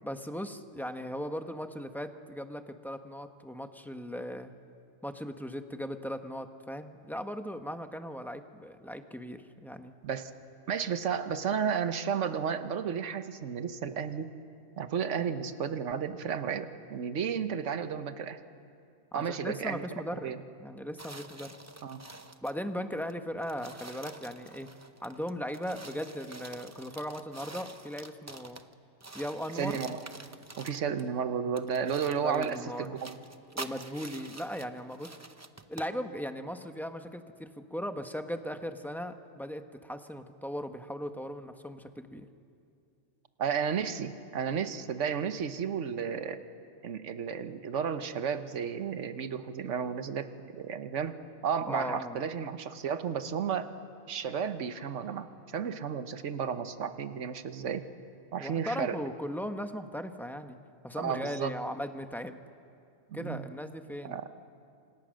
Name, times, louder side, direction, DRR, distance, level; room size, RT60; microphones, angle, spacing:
voice 1, 0.0-4.5 5.0-9.9 19.1-21.6 22.4-24.7 25.0-28.6 29.1-29.8 32.2-32.9 33.5-35.1 35.7-42.3 51.7-52.2 58.4-60.6 60.8-62.4 63.1-64.2, equal, ahead, 7 dB, 1.0 m, -38 dB
voice 2, 10.7-14.3 14.8-18.4 19.1-19.9 20.1-20.4 21.8-22.0 29.5-30.0 30.6-33.2 43.4-46.4 46.8-50.3 50.6-51.2 51.4-53.7 54.1-57.9 58.3-59.0 61.0-61.5 63.1-63.5 64.0-64.2, right 7 dB, 75° right, 10 dB, 1.4 m, -33 dB
sound 1, 21.0-22.6 23.1-23.2 23.4-28.7 29.0-31.1 31.6-35.9, right 2 dB, 15° right, 0.6 m, -47 dB
28.0 x 27.0 x 6.4 m, 2.5 s
omnidirectional pair, 1.3 m